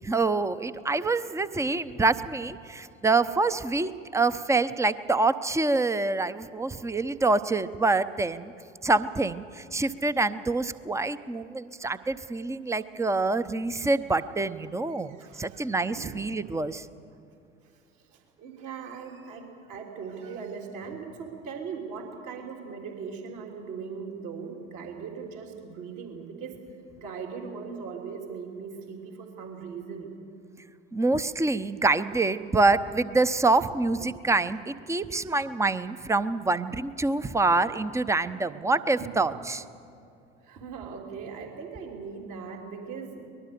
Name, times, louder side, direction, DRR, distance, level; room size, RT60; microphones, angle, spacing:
voice 1, 0.0-8.5 8.8-16.9 30.9-39.6, right 3 dB, 10° right, 13 dB, 0.8 m, -26 dB
voice 2, 15.0-16.1 17.9-26.6 27.0-30.1 40.4-43.3, right 5 dB, 55° right, 1 dB, 3.4 m, -39 dB
24.0 x 20.0 x 6.9 m, 2.6 s
figure-of-eight pair, 70°, 38 cm